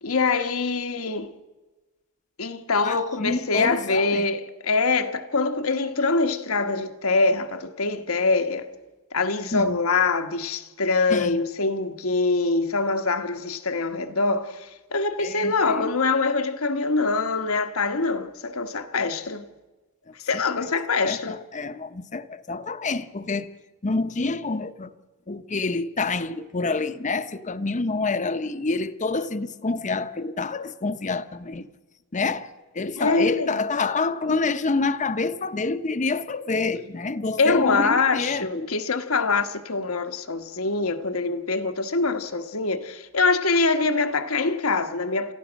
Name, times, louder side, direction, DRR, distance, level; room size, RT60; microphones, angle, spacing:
voice 1, 0.0-1.3 2.4-8.7 9.1-19.5 20.2-21.4 33.0-33.7 37.4-45.3, left 3 dB, 75° left, 1.4 m, -24 dB
voice 2, 2.8-4.3 9.5-9.8 11.1-11.4 15.2-15.9 20.1-20.7 21.0-23.5 23.8-24.9 25.3-31.7 32.1-32.5 32.7-38.7, left 3 dB, 35° left, 0.8 m, -27 dB
29.5 x 14.0 x 6.3 m
head